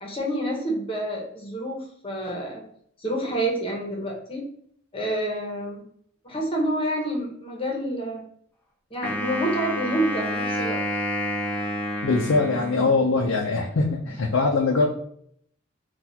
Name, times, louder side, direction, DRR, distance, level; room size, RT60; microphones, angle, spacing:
voice 1, 0.0-2.6 3.0-4.4 4.9-5.8 6.2-8.2 8.9-10.8 12.8-12.9, right 1 dB, 25° left, -1 dB, 0.9 m, -28 dB
Wind instrument woodwind instrument, 9.0-13.3, equal, 10° left, 0.5 m, -29 dB
voice 2, 12.0-14.9, left 3 dB, 85° left, 0 dB, 0.5 m, -22 dB
4.0 x 2.4 x 2.8 m, 0.66 s
head